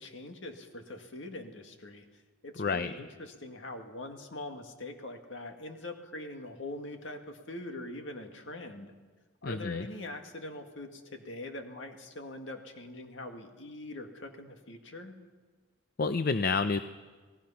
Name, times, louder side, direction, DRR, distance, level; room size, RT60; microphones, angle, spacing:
voice 1, 0.0-8.9 9.4-15.1, left 2 dB, 65° left, 5 dB, 2.0 m, -43 dB
voice 2, 2.6-2.9 9.4-9.8 16.0-16.8, left 4 dB, 50° left, 11 dB, 0.5 m, -29 dB
27.5 x 18.0 x 5.7 m, 1.4 s
head